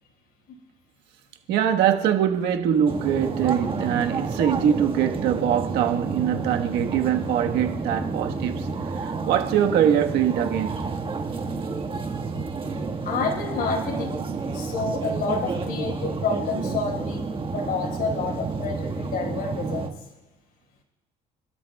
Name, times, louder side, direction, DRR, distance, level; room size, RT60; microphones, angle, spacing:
voice 1, 1.5-8.7 8.9-10.8 14.2-14.4, right 9 dB, 85° right, 1.5 m, -23 dB
sound 1, 2.9-19.9, right 4 dB, 30° right, 1.6 m, -30 dB
voice 2, 13.0-14.2 14.5-19.9, left 4 dB, 65° left, 4.8 m, -29 dB
29.5 x 13.0 x 2.4 m
cardioid pair, 110°, 17 cm